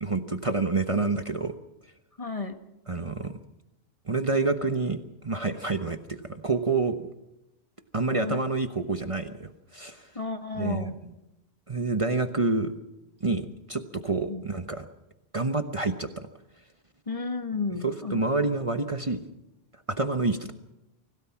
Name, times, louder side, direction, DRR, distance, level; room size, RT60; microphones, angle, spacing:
voice 1, 0.0-1.5 2.9-3.3 4.1-7.0 7.9-10.1 10.6-11.1 11.7-12.7 13.2-14.8 15.3-16.3 17.8-19.2 19.9-20.5, right 3 dB, 30° right, 7 dB, 1.1 m, -28 dB
voice 2, 2.2-2.6 8.1-8.4 10.2-10.9 14.3-14.4 17.1-18.2, left 4 dB, 35° left, 6 dB, 1.7 m, -32 dB
25.5 x 17.0 x 5.9 m, 0.92 s
omnidirectional pair, 1.1 m